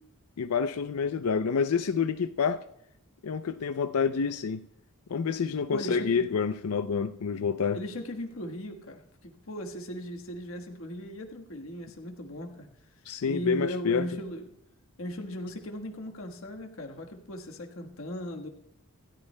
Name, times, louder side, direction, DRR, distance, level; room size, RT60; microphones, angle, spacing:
voice 1, 0.4-2.6 3.2-4.6 5.1-7.8 13.1-14.1, left 6 dB, 85° left, 0.5 m, -28 dB
voice 2, 5.7-6.3 7.7-12.7 13.2-14.5 15.0-18.5, equal, 65° left, 1.4 m, -38 dB
26.5 x 13.0 x 2.2 m
head